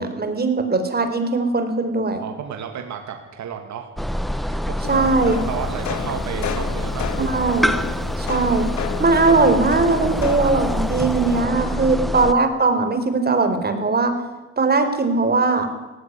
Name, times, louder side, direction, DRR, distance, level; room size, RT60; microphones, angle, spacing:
voice 1, 0.0-2.2 4.9-5.4 7.2-7.8 8.2-8.7 9.0-14.2 14.6-15.7, right 3 dB, 30° right, 7 dB, 4.3 m, -19 dB
voice 2, 2.2-3.9 4.3-7.4 11.6-12.0, right 8 dB, 70° right, 5 dB, 2.5 m, -33 dB
sound 1, 4.0-12.3, equal, ahead, 1.2 m, -26 dB
sound 2, 4.8-11.4, left 9 dB, 70° left, 1.8 m, -32 dB
18.0 x 15.0 x 9.7 m, 1.2 s
cardioid pair, 90°, 30 cm